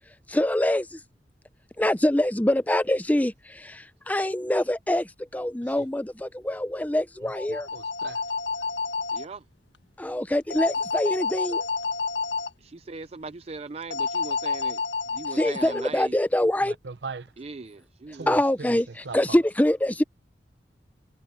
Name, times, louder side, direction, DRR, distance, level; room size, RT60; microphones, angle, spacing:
voice 1, 0.3-1.0 1.8-7.7 10.0-11.6 15.3-16.8 18.3-20.0, left 1 dB, 10° left, 0.6 m, -25 dB
voice 2, 7.2-8.2 16.6-17.3 18.1-18.7 19.0-19.4, right 4 dB, 75° right, 0.8 m, -39 dB
sound 1, 7.3-9.2 10.5-12.5 13.9-15.9, left 4 dB, 85° left, 1.4 m, -29 dB
voice 3, 9.1-9.4 12.6-14.8 15.1-16.2 17.4-18.4, right 4 dB, 35° right, 0.4 m, -39 dB
head